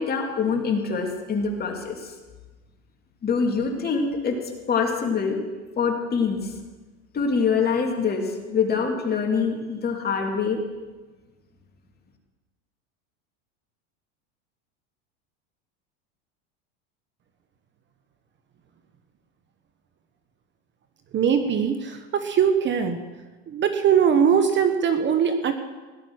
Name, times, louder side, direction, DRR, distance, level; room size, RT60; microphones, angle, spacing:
voice 1, 0.0-2.1 3.2-4.3 4.7-5.4 5.8-6.5 7.1-10.6, left 5 dB, 25° left, 2 dB, 2.8 m, -24 dB
voice 2, 21.1-23.0 23.5-25.5, right 7 dB, 30° right, 8 dB, 1.2 m, -21 dB
17.5 x 11.5 x 6.4 m, 1.3 s
supercardioid pair, 120°, 35 cm